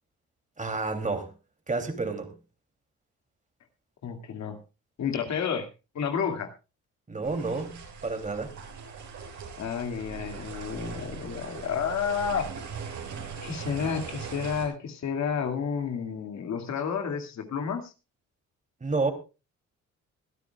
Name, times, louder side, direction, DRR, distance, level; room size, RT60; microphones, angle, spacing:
voice 1, 0.6-1.3 1.7-2.4 7.1-7.8 8.0-8.5 18.8-19.1, right 3 dB, 25° right, 3.1 m, -29 dB
voice 2, 4.0-4.6 5.0-5.7 5.9-6.5 9.6-12.5 13.4-17.9, left 6 dB, 65° left, 2.5 m, -30 dB
sound 1, 7.2-14.7, right 6 dB, 70° right, 6.8 m, -40 dB
22.5 x 12.5 x 2.4 m
cardioid pair, 90°, 30 cm